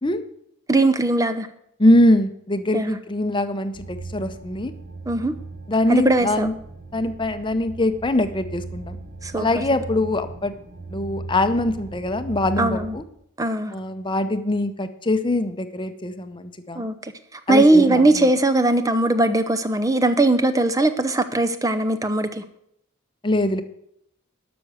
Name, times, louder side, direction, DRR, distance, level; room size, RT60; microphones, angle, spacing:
voice 1, 0.7-1.5 2.7-3.0 5.1-5.3 5.9-6.5 9.2-9.5 12.6-13.0 13.4-13.7 16.8-17.1 17.5-22.4, right 2 dB, 15° right, 10 dB, 0.7 m, -19 dB
voice 2, 1.8-4.7 5.7-6.5 6.9-9.0 9.4-10.5 10.9-13.0 13.7-16.9 17.5-18.3 23.2-23.6, left 1 dB, 25° left, 9 dB, 0.8 m, -22 dB
sound 1, 3.7-13.0, right 3 dB, 45° right, 1.4 m, -38 dB
12.5 x 6.1 x 7.9 m, 0.73 s
head